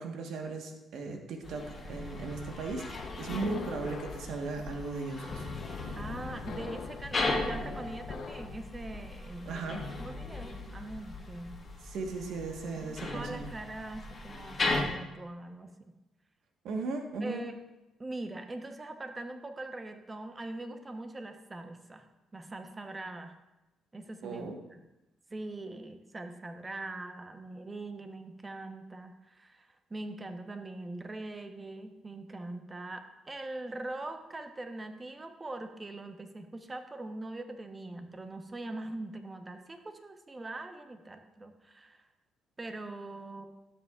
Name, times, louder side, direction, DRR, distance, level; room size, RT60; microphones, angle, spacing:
voice 1, 0.0-5.4 9.4-9.8 11.8-13.5 16.6-17.4 24.2-24.6, right 3 dB, 75° right, 3 dB, 1.3 m, -37 dB
sound 1, 1.4-14.8, left 2 dB, 35° left, 1.7 m, -38 dB
sound 2, 1.8-8.6, left 5 dB, 65° left, 0.7 m, -44 dB
voice 2, 3.3-3.7 5.9-11.6 12.8-15.9 17.2-17.5 18.0-22.0 22.3-23.3 23.9-24.8 25.3-42.1 42.6-43.5, right 2 dB, 25° right, 6 dB, 0.9 m, -42 dB
12.5 x 7.7 x 2.4 m, 0.99 s
cardioid pair, 90°, 0 cm